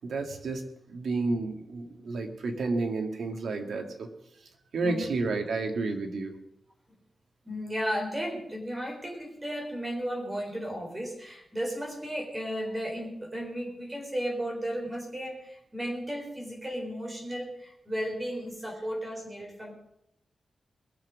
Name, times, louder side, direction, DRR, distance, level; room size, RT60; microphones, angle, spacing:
voice 1, 0.0-4.1 4.7-6.3, right 3 dB, 75° right, 4 dB, 2.2 m, -31 dB
voice 2, 1.9-2.3 4.8-5.1 7.4-19.7, equal, 15° right, -1 dB, 4.1 m, -34 dB
21.5 x 7.3 x 6.3 m, 0.78 s
wide cardioid pair, 170°, 0 cm